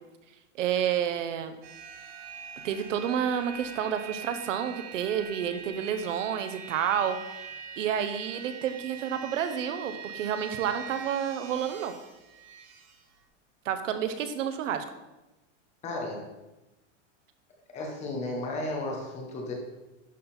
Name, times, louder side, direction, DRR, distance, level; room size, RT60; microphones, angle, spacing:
voice 1, 0.6-1.6 2.6-7.5 7.8-11.9 13.6-14.8, right 8 dB, 85° right, 9 dB, 1.0 m, -30 dB
sound 1, 1.6-13.0, right 7 dB, 20° right, 0.5 m, -43 dB
voice 2, 15.8-16.2 17.7-19.5, left 2 dB, 20° left, 1 dB, 1.1 m, -34 dB
11.5 x 4.0 x 4.3 m, 1.0 s
supercardioid pair, 175°, 37 cm